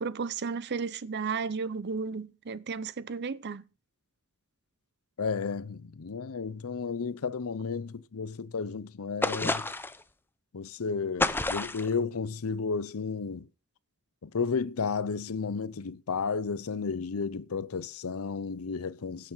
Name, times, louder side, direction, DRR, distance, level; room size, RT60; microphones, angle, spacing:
voice 1, 0.0-3.6, right 5 dB, 50° right, 0.6 m, -33 dB
voice 2, 5.2-9.7 10.5-13.5 14.2-19.3, left 5 dB, 70° left, 0.6 m, -33 dB
sound 1, 9.2-10.0 11.2-11.9, left 2 dB, 10° left, 0.6 m, -29 dB
16.5 x 6.8 x 5.6 m
head